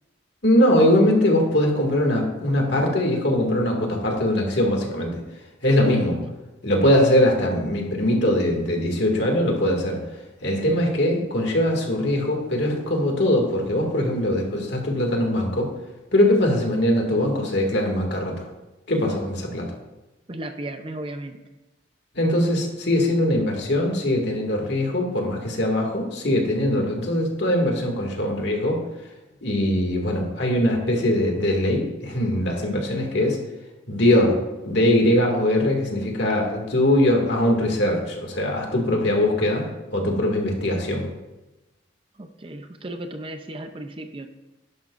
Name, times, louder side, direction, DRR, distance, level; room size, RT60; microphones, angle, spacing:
voice 1, 0.4-5.2 5.6-6.2 6.6-10.0 10.4-15.7 16.1-18.5 18.9-19.7 22.2-28.8 29.4-33.4 33.9-34.4 34.6-39.6 39.9-41.1, left 1 dB, 65° left, 1 dB, 2.2 m, -21 dB
voice 2, 20.3-21.4 42.2-44.3, right 1 dB, 25° right, 7 dB, 0.5 m, -35 dB
12.0 x 11.0 x 2.5 m, 1.0 s
head